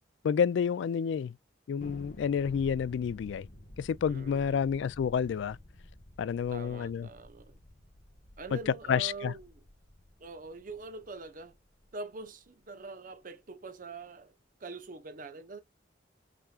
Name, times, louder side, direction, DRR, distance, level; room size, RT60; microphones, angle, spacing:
voice 1, 0.2-1.3 1.7-3.5 3.8-5.6 6.2-7.1 8.5-8.6 8.9-9.3, left 7 dB, 70° left, 0.3 m, -29 dB
Thunder, 1.8-12.4, left 1 dB, 45° left, 1.1 m, -52 dB
voice 2, 4.1-4.8 6.5-7.6 8.4-9.6 10.2-11.5 11.9-14.3 14.6-15.6, right 3 dB, 45° right, 0.7 m, -44 dB
5.7 x 3.6 x 2.3 m
head